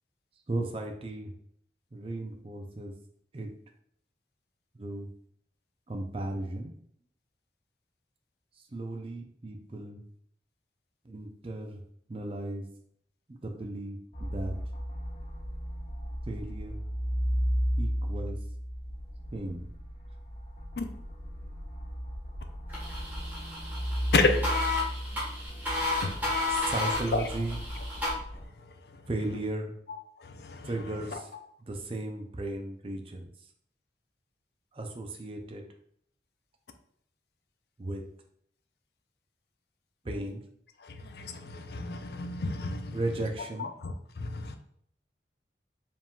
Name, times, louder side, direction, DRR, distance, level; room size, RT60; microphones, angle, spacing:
voice 1, 0.5-1.3 1.9-2.9 3.3-3.5 4.8-5.1 5.9-6.7 8.7-10.0 11.1-11.8 12.1-12.6 13.4-14.0 14.3-14.5 16.3-16.8 17.8-18.4 19.3-19.6 26.5-27.6 29.1-29.7 30.6-31.3 31.7-33.2 34.8-35.6 37.8-38.0 40.1-40.4 42.9-43.7, right 2 dB, 30° right, 4 dB, 0.5 m, -35 dB
sound 1, 14.1-28.4, equal, 30° left, 0.9 m, -34 dB
sound 2, 22.7-28.1, left 2 dB, 10° right, 1.3 m, -32 dB
voice 2, 24.1-24.5 26.0-26.2 27.1-27.2 29.9-30.0 30.2-31.2 40.8-43.0 43.6-44.6, left 3 dB, 65° left, 7 dB, 0.4 m, -31 dB
4.8 x 3.6 x 2.3 m, 0.67 s
head